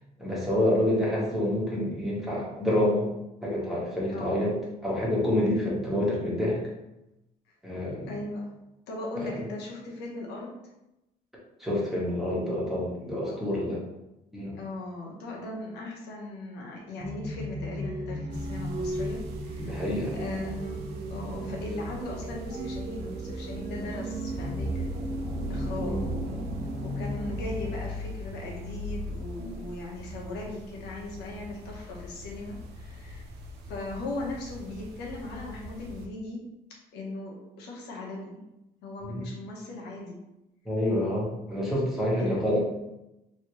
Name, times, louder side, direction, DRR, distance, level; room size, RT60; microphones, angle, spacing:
voice 1, 0.2-3.1 3.4-6.6 7.6-8.1 9.2-9.3 11.6-13.8 14.3-14.6 19.6-20.3 21.4-21.5 25.8-26.0 29.4-29.5 39.1-39.2 40.6-42.6, left 1 dB, ahead, -6 dB, 1.3 m, -28 dB
voice 2, 4.1-4.5 8.1-8.5 8.9-10.6 13.3-13.6 14.5-24.9 25.5-26.4 26.8-33.2 33.7-36.5 36.9-38.5 38.8-40.2 42.0-42.5, left 2 dB, 85° left, -2 dB, 0.9 m, -38 dB
sound 1, 17.0-27.7, right 1 dB, 45° right, 0.7 m, -36 dB
sound 2, 18.3-36.1, left 1 dB, 75° right, 0.5 m, -40 dB
3.2 x 2.8 x 2.9 m, 0.92 s
cardioid pair, 110°, 17 cm